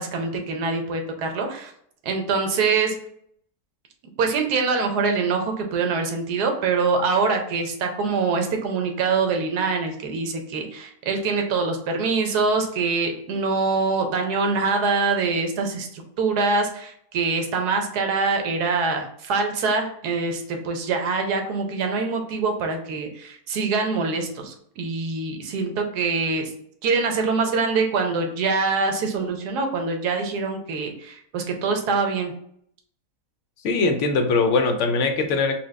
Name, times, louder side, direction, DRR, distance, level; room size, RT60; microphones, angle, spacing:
voice 1, 0.0-1.7 2.0-2.9 4.2-26.5 26.8-32.3, right 4 dB, 85° right, 4 dB, 1.3 m, -24 dB
voice 2, 33.6-35.5, left 3 dB, 65° left, 5 dB, 0.8 m, -21 dB
4.3 x 2.3 x 3.2 m, 0.66 s
omnidirectional pair, 1.6 m